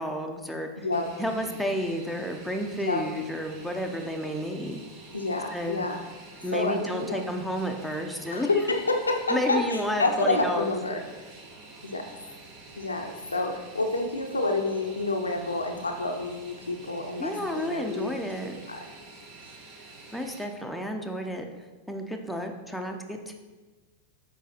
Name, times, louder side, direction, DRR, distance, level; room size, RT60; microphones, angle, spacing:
voice 1, 0.0-0.9 1.2-4.8 5.5-5.9 6.4-8.5 9.3-10.7 17.2-18.5 20.1-21.5 21.9-23.3, equal, ahead, 3 dB, 0.7 m, -31 dB
voice 2, 0.8-1.1 2.7-3.1 5.1-6.0 6.5-7.2 8.3-11.3 11.8-12.1 12.8-18.1 18.7-18.9, left 2 dB, 80° left, 4 dB, 0.6 m, -28 dB
Fixed-wing aircraft airplane, 0.9-20.4, right 3 dB, 45° right, 1.1 m, -48 dB
7.1 x 4.8 x 4.3 m, 1.3 s
figure-of-eight pair, 90°, 0 cm